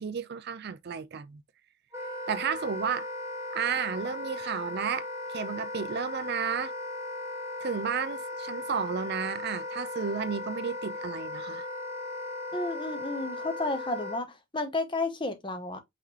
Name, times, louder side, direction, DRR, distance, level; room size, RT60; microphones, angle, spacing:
voice 1, 0.0-1.4 2.3-3.1 3.5-6.7 7.6-11.6, right 6 dB, 45° right, 0.4 m, -32 dB
Wind instrument woodwind instrument, 1.9-14.2, left 2 dB, 10° right, 1.4 m, -37 dB
voice 2, 12.5-15.8, left 2 dB, 20° left, 0.9 m, -32 dB
5.7 x 3.1 x 3.0 m
head